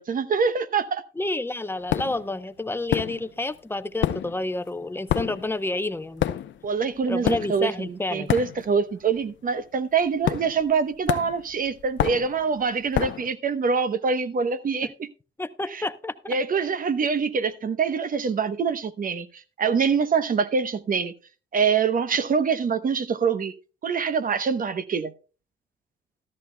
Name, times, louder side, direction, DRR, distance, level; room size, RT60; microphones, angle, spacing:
voice 1, 0.0-1.0 6.6-15.1 15.7-15.8 16.3-21.1 21.5-23.5 23.8-25.1, right 5 dB, 45° right, 0.9 m, -25 dB
voice 2, 1.2-6.3 7.1-8.4 14.8-14.9 15.4-16.3, left 2 dB, 10° left, 0.7 m, -29 dB
sound 1, 1.9-2.3 2.9-3.5 3.8-8.9 9.2-9.5 10.2-10.8 11.1-13.3, left 11 dB, 70° left, 0.7 m, -28 dB
13.5 x 13.5 x 2.2 m
cardioid pair, 90°, 20 cm